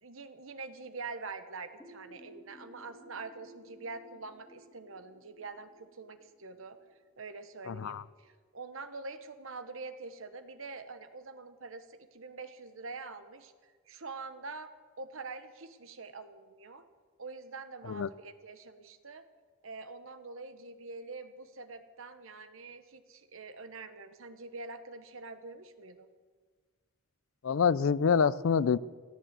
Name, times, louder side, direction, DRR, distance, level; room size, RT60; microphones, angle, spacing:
voice 1, 0.0-6.8 7.2-14.7 15.0-16.8 17.2-19.2 19.6-26.1, right 3 dB, 65° right, 10 dB, 1.1 m, -45 dB
sound 1, 1.8-7.4, right 1 dB, 10° left, 2.4 m, -57 dB
voice 2, 7.7-8.0 17.9-18.1 27.4-28.8, left 6 dB, 65° left, 19 dB, 0.4 m, -26 dB
16.0 x 9.3 x 8.1 m, 1.5 s
head